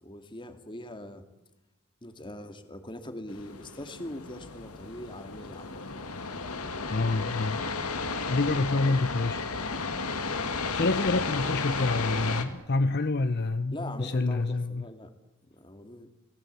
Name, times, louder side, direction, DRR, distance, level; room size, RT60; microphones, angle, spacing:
voice 1, 0.0-1.2 2.0-5.8 10.3-10.7 13.7-15.1 15.4-16.1, left 1 dB, 20° left, 7 dB, 2.2 m, -42 dB
sound 1, 3.3-12.4, left 4 dB, 90° left, 2.5 m, -33 dB
voice 2, 6.9-7.6 8.3-9.4 10.7-14.9, left 3 dB, 50° left, 11 dB, 0.8 m, -27 dB
29.5 x 19.0 x 8.3 m, 1.0 s
head